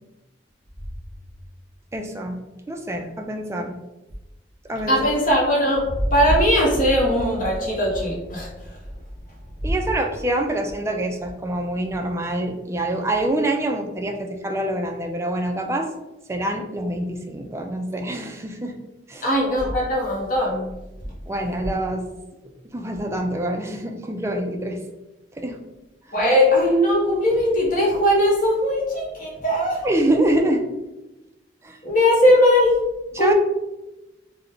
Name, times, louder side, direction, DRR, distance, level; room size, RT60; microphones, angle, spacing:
voice 1, 1.9-2.4 2.7-3.8 4.7-5.0 9.6-15.9 16.3-18.7 19.1-19.3 21.3-22.1 22.7-24.8 25.3-25.6 26.1-26.2 29.8-30.6 31.6-31.8 33.1-33.3, right 1 dB, 15° right, 3 dB, 0.3 m, -25 dB
voice 2, 4.9-8.5 19.2-20.7 26.1-29.8 31.8-32.8 33.2-33.3, equal, 45° left, -4 dB, 1.0 m, -19 dB
3.4 x 2.1 x 3.7 m, 1.0 s
head